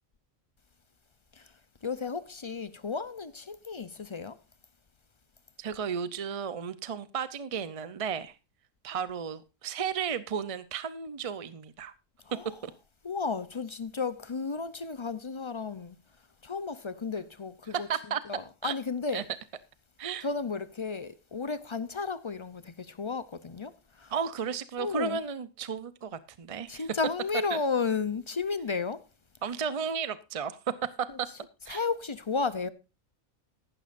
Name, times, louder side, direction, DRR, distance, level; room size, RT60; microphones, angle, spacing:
voice 1, 1.8-4.4 12.3-12.6 13.0-16.0 16.4-17.9 18.3-19.3 20.2-24.1 24.8-25.2 26.7-29.0 31.7-32.7, left 4 dB, 45° left, 0.4 m, -33 dB
voice 2, 5.6-8.4 8.8-11.9 12.6-12.7 17.7-18.2 18.6-18.7 19.1-19.2 20.0-20.3 24.1-26.9 27.5-27.6 29.4-31.3 31.6-31.8, right 7 dB, 45° right, 0.4 m, -34 dB
14.5 x 11.5 x 2.5 m
omnidirectional pair, 1.4 m